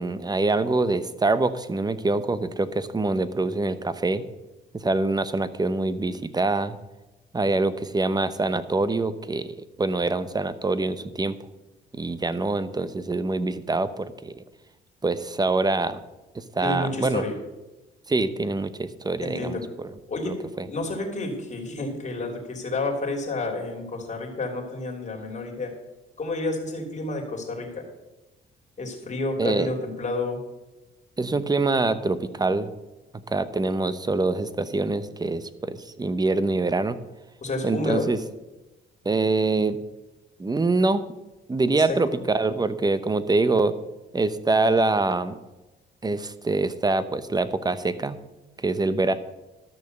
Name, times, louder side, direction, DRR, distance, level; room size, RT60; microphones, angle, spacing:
voice 1, 0.0-4.2 4.7-6.8 7.3-11.3 11.9-14.4 15.0-16.0 16.3-17.2 18.1-19.9 20.3-20.7 29.4-29.7 31.2-32.7 33.3-37.0 37.6-38.2 39.0-39.8 40.4-41.0 41.5-43.7 44.1-45.4 46.0-48.2 48.6-49.1, right 3 dB, 20° right, 13 dB, 0.8 m, -25 dB
voice 2, 16.6-17.3 19.2-19.6 20.1-20.3 20.7-25.7 26.2-27.8 28.8-30.4 37.4-38.1 41.7-42.2, left 2 dB, 35° left, 1 dB, 3.1 m, -30 dB
12.5 x 6.5 x 6.7 m, 1.1 s
cardioid pair, 90°, 20 cm